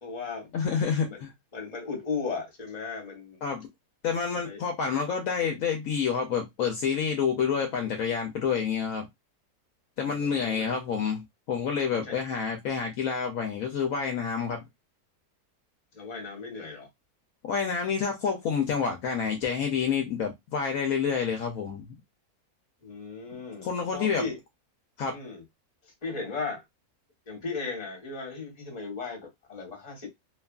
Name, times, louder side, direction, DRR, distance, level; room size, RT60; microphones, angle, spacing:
voice 1, 0.0-1.2 1.5-3.4 4.4-4.6 10.0-10.7 11.9-12.1 15.9-16.9 22.8-24.4 25.1-25.4 25.8-26.6 27.3-30.1, left 4 dB, 30° left, 1.0 m, -36 dB
voice 2, 0.5-1.3 3.4-3.6 4.0-9.1 10.0-14.6 17.4-21.9 23.6-24.2 25.0-25.2, left 6 dB, 70° left, 0.9 m, -28 dB
2.9 x 2.4 x 2.2 m
omnidirectional pair, 1.6 m